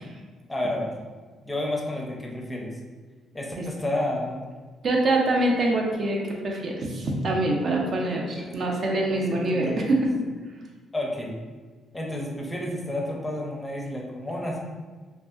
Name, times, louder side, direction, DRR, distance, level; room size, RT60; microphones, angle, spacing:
voice 1, 0.5-0.9 1.4-2.8 3.3-4.5 8.3-8.7 9.0-9.9 10.9-11.4 11.9-14.6, left 1 dB, 15° left, -1 dB, 0.5 m, -31 dB
voice 2, 4.8-10.1, right 2 dB, 50° right, -1 dB, 0.5 m, -25 dB
2.6 x 2.4 x 2.4 m, 1.4 s
cardioid pair, 90°, 0 cm